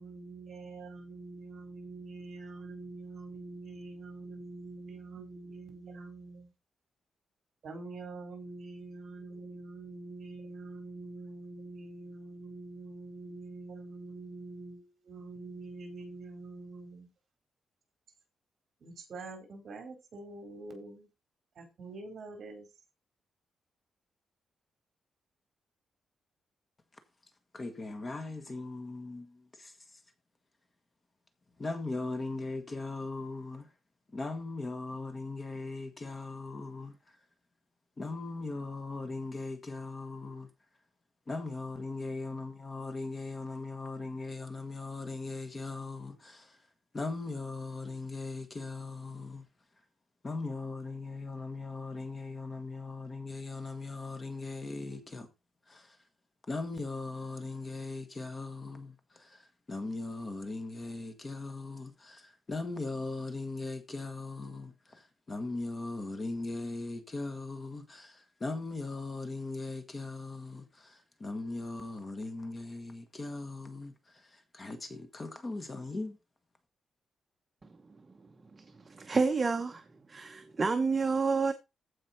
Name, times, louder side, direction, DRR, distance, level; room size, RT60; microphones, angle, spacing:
voice 1, 0.0-6.5 7.6-17.1 18.8-21.1 21.6-22.7, right 3 dB, 50° right, 4.3 m, -45 dB
voice 2, 27.5-29.7 31.6-33.7 34.1-37.0 38.0-40.5 41.3-46.5 46.9-49.4 50.2-55.3 55.7-55.9 56.5-73.9 74.5-76.2, left 3 dB, 25° left, 1.5 m, -39 dB
voice 3, 78.5-79.8 80.1-81.5, right 4 dB, 25° right, 0.9 m, -29 dB
15.0 x 5.4 x 4.4 m
wide cardioid pair, 170°, 0 cm